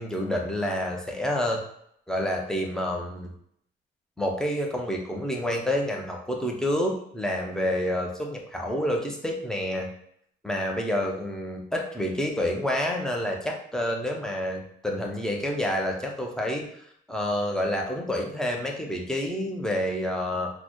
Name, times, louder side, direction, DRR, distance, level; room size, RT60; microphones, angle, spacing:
voice 1, 0.0-1.6 2.1-3.3 4.2-9.9 10.4-16.6 17.1-20.5, left 1 dB, 5° left, 0 dB, 0.7 m, -28 dB
3.9 x 2.1 x 3.0 m, 0.71 s
cardioid pair, 90°, 20 cm